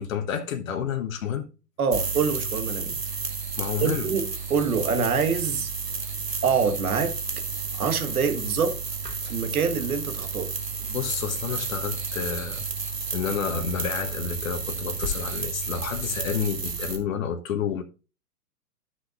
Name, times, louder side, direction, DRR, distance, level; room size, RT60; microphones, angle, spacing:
voice 1, 0.0-1.5 3.6-4.1 9.2-9.3 10.9-12.7 13.1-17.8, left 7 dB, 55° left, 1.2 m, -30 dB
voice 2, 1.8-2.9 3.8-4.2 4.5-5.7 6.4-7.1 7.8-8.8 9.2-10.5, right 5 dB, 65° right, 1.8 m, -25 dB
sound 1, 1.9-17.0, right 4 dB, 90° right, 1.9 m, -31 dB
13.0 x 6.1 x 2.5 m
figure-of-eight pair, 115°, 47 cm